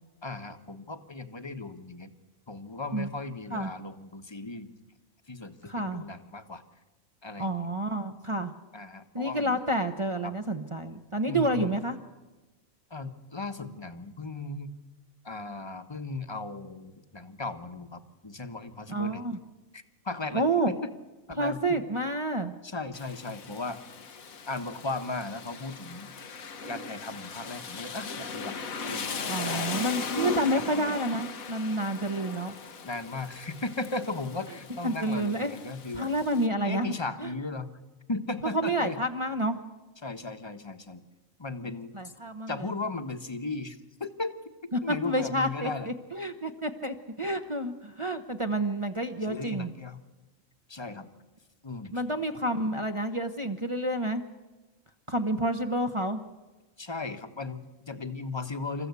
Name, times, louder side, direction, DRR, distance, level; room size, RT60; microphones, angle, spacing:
voice 1, 0.2-2.1 2.5-4.7 5.3-6.6 7.2-7.7 8.7-9.6 10.2-10.3 11.3-11.8 12.9-14.7 15.2-19.2 19.7-20.9 21.3-21.8 22.6-23.8 24.5-26.1 26.7-28.6 28.8-29.2 29.5-29.7 30.5-31.0 32.8-36.1 36.6-37.7 38.1-39.0 40.0-41.0 41.4-42.1 42.5-45.9 49.3-50.0 50.7-51.1 51.6-51.9 56.8-58.9, left 3 dB, 20° left, 9 dB, 1.1 m, -36 dB
voice 2, 5.6-6.0 7.4-8.5 9.1-12.0 18.9-19.4 20.3-20.7 21.4-22.5 29.3-32.6 34.8-35.6 35.9-36.9 37.2-37.3 38.5-39.6 41.9-42.7 44.7-49.7 51.9-54.2 55.1-56.2, right 1 dB, 25° right, 5 dB, 0.9 m, -29 dB
Rain, 22.9-36.5, left 4 dB, 90° left, 1.7 m, -38 dB
28.0 x 14.5 x 8.3 m, 1.2 s
omnidirectional pair, 1.4 m